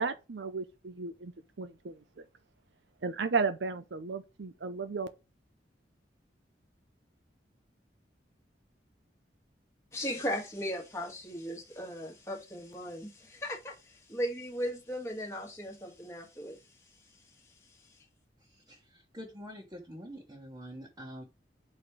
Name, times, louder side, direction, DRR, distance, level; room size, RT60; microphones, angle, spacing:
voice 1, 0.0-1.3 1.6-2.2 3.0-5.1, right 4 dB, 75° right, 0.6 m, -34 dB
voice 2, 9.9-16.6, equal, 15° left, 1.4 m, -37 dB
voice 3, 18.4-21.2, equal, 20° right, 1.3 m, -46 dB
4.9 x 4.2 x 4.6 m
head